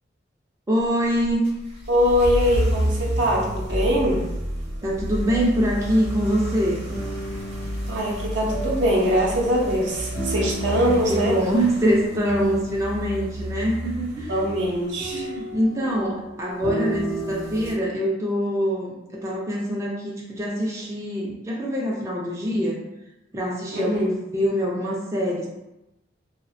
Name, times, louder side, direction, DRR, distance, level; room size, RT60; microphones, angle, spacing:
voice 1, 0.7-1.5 4.8-6.8 10.7-14.5 15.1-22.8 23.3-24.0 24.3-25.5, equal, 15° right, -3 dB, 0.3 m, -24 dB
sound 1, 1.2-17.7, right 1 dB, 35° right, 0.8 m, -30 dB
voice 2, 1.9-4.2 7.9-11.3 14.3-15.3 23.7-24.1, equal, 70° right, -2 dB, 0.6 m, -22 dB
2.7 x 2.1 x 2.4 m, 0.94 s
head